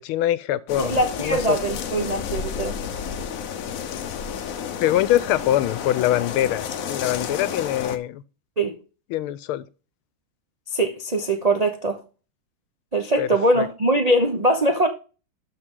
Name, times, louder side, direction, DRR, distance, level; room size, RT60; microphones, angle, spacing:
voice 1, 0.0-1.6 4.8-8.2 9.1-9.6 13.2-13.3 13.6-13.7, left 13 dB, 90° left, 1.5 m, -23 dB
sound 1, 0.7-8.0, left 7 dB, 60° left, 0.9 m, -31 dB
voice 2, 0.8-2.8 8.6-8.8 10.7-12.0 12.9-14.9, right 1 dB, 75° right, 0.3 m, -22 dB
12.5 x 4.6 x 3.7 m
omnidirectional pair, 2.3 m